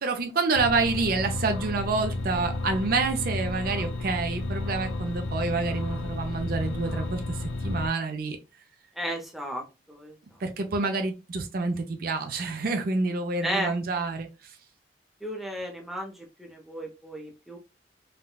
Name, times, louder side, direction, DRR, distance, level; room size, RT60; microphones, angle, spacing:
voice 1, 0.0-8.4 10.4-14.3, right 3 dB, 50° right, 5 dB, 0.4 m, -28 dB
sound 1, 0.5-7.9, left 2 dB, 80° left, 0.6 m, -32 dB
voice 2, 8.9-10.2 13.4-13.8 15.2-17.6, equal, ahead, 0 dB, 0.6 m, -34 dB
3.6 x 2.2 x 2.2 m, 0.28 s
head